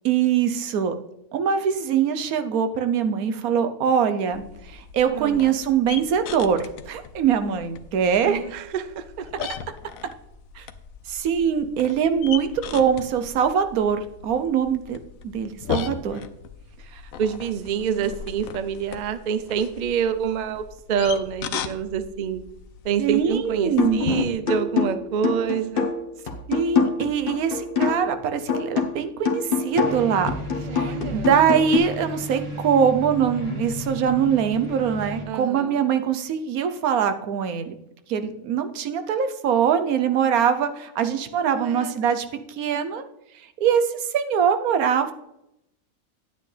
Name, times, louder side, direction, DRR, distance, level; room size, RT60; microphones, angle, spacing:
voice 1, 0.0-0.9 1.3-8.4 10.6-10.7 11.1-15.0 15.2-16.2 16.9-17.0 23.0-24.0 26.5-30.3 30.7-37.7 38.1-43.0 43.6-45.1, right 7 dB, 90° right, 9 dB, 1.2 m, -23 dB
sound 1, 4.3-24.3, left 8 dB, 75° left, 1.0 m, -37 dB
voice 2, 5.1-5.5 8.2-9.5 17.2-22.4 22.8-25.9 30.6-31.3 35.3-35.8 41.5-41.9, right 7 dB, 50° right, 11 dB, 0.5 m, -27 dB
sound 2, 23.8-24.1 24.5-28.2 28.5-31.8, left 5 dB, 40° left, 1.2 m, -25 dB
sound 3, 29.7-35.3, left 1 dB, 20° right, 1.7 m, -34 dB
10.0 x 9.0 x 3.3 m, 0.83 s
omnidirectional pair, 1.5 m